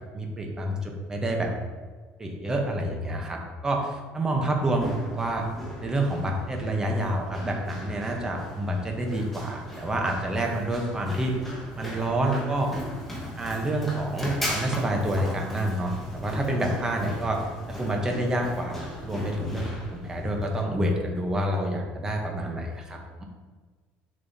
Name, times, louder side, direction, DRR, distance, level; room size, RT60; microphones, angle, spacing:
voice 1, 0.1-1.5 2.2-5.5 5.8-11.4 11.8-12.7 13.4-23.2, right 1 dB, 15° right, 1 dB, 0.9 m, -28 dB
Run, 4.6-20.6, equal, 5° left, 1.3 m, -37 dB
6.9 x 5.4 x 2.8 m, 1.4 s
cardioid pair, 145°, 4 cm